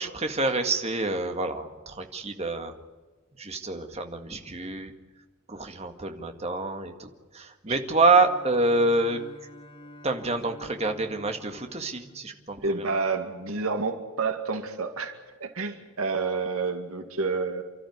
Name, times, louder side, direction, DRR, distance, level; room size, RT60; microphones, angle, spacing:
voice 1, 0.0-2.7 3.4-4.9 5.5-9.2 10.0-12.9, right 3 dB, 30° right, 5 dB, 2.0 m, -27 dB
Bowed string instrument, 7.8-13.1, equal, 25° left, 2.2 m, -49 dB
voice 2, 12.6-17.6, right 4 dB, 85° right, 6 dB, 2.3 m, -29 dB
29.5 x 13.0 x 9.6 m, 1.3 s
head